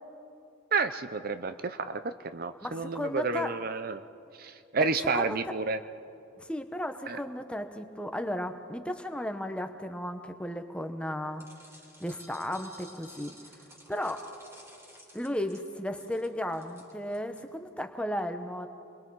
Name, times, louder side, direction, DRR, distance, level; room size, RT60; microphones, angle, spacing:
voice 1, 0.7-4.0 4.4-5.8 7.1-7.2, right 4 dB, 45° right, 11 dB, 0.5 m, -30 dB
voice 2, 2.6-3.5 5.1-5.4 6.4-11.5 12.0-13.3 13.9-14.2 15.1-18.7, left 1 dB, 5° left, 7 dB, 0.9 m, -34 dB
sound 1, 11.4-17.4, equal, 15° right, 3.5 m, -53 dB
30.0 x 22.5 x 4.7 m, 2.7 s
head